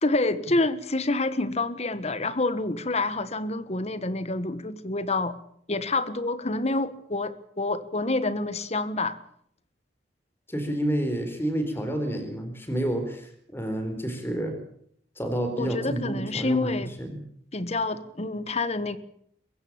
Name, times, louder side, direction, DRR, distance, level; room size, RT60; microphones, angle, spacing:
voice 1, 0.0-5.3 5.7-9.2 15.6-16.9 17.5-19.0, left 2 dB, 35° left, 1.5 m, -27 dB
voice 2, 10.5-14.6 15.2-16.7 17.0-17.1, right 1 dB, 15° left, 4.2 m, -29 dB
23.5 x 15.5 x 8.8 m
head